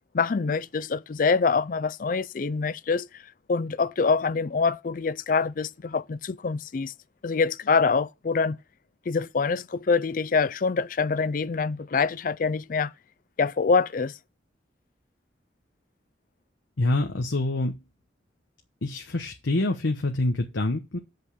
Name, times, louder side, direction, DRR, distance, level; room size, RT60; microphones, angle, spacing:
voice 1, 0.1-3.1 3.5-6.9 7.2-8.6 9.1-12.9 13.4-14.1, left 5 dB, 45° left, 0.4 m, -25 dB
voice 2, 16.8-17.8 18.8-21.0, left 2 dB, 90° left, 1.1 m, -26 dB
7.8 x 5.4 x 6.7 m
head